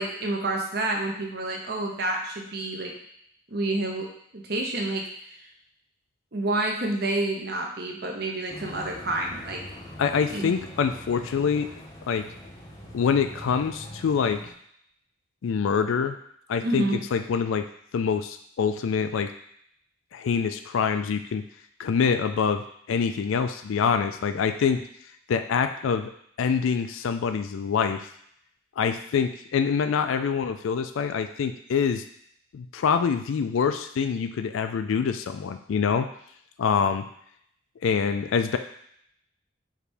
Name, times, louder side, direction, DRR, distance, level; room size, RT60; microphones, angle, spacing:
voice 1, 0.0-2.9 3.5-5.1 6.3-9.6 10.3-10.5 16.6-17.0, right 2 dB, 50° right, 1 dB, 0.7 m, -29 dB
sound 1, 8.5-14.5, equal, 20° left, 0.5 m, -42 dB
voice 2, 10.0-11.7 12.1-12.3 12.9-14.4 15.4-16.2 16.5-16.8 17.1-17.7 17.9-19.3 20.1-21.4 21.8-24.9 25.3-26.1 26.4-28.1 28.8-32.0 32.5-36.1 36.6-37.0 37.8-38.6, left 6 dB, 75° left, 9 dB, 0.3 m, -25 dB
4.8 x 2.7 x 3.4 m, 0.69 s
head